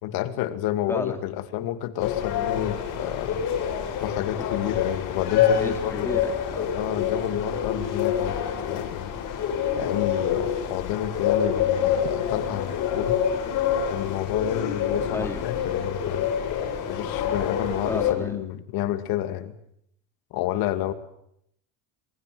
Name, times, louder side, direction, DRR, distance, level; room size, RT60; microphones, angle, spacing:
voice 1, 0.0-3.4 4.0-6.2 6.7-9.1 9.8-13.2 13.9-16.3 16.9-19.5 20.3-20.9, left 12 dB, 70° left, 10 dB, 2.4 m, -30 dB
sound 1, 2.0-18.1, left 8 dB, 55° left, 7.0 m, -27 dB
voice 2, 5.5-6.7 15.1-15.4 17.8-18.4, left 1 dB, 5° left, 5 dB, 3.0 m, -33 dB
27.0 x 20.5 x 7.9 m, 0.74 s
cardioid pair, 140°, 38 cm